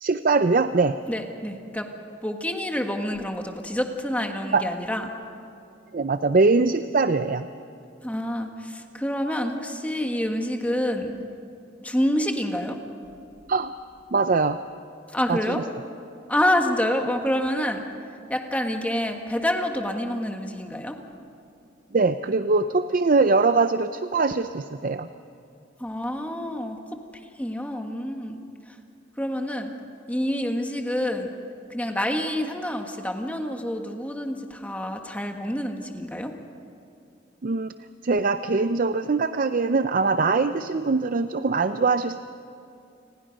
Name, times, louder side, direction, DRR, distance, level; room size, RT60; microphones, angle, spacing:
voice 1, 0.0-1.0 4.5-4.6 5.9-7.5 13.5-13.7 14.1-14.6 15.3-15.6 21.9-25.1 37.4-37.7 38.0-42.2, right 3 dB, 45° right, 11 dB, 0.5 m, -22 dB
voice 2, 1.1-1.9 2.2-5.1 8.0-11.1 11.8-12.8 15.1-15.6 16.3-17.8 18.3-21.0 25.8-26.8 27.4-28.4 29.2-29.7 30.1-31.3 31.7-36.3, left 1 dB, 10° left, 4 dB, 1.5 m, -27 dB
29.0 x 20.5 x 5.3 m, 2.7 s
head